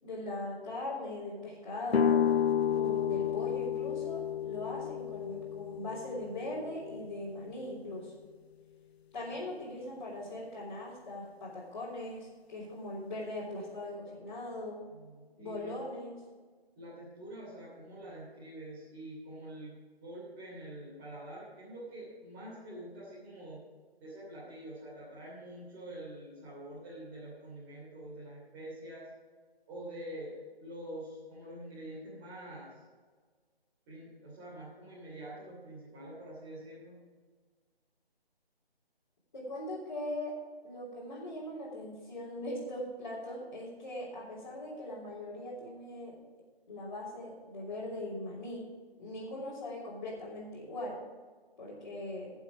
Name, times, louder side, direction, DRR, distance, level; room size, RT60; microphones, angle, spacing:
voice 1, 0.0-2.2 2.7-8.1 9.1-14.8 15.4-16.1 39.3-40.3 40.6-46.1 46.7-48.7 49.0-51.0 51.6-52.3, left 1 dB, 35° left, -9 dB, 3.6 m, -40 dB
sound 1, 1.9-7.7, left 8 dB, 80° left, 0.6 m, -31 dB
voice 2, 14.9-15.7 16.8-19.8 20.0-23.6 24.0-29.1 29.7-30.3 30.6-32.8 33.9-37.0, right 1 dB, 15° right, -9 dB, 2.9 m, -46 dB
16.0 x 7.3 x 5.0 m, 1.5 s
figure-of-eight pair, 165°, 31 cm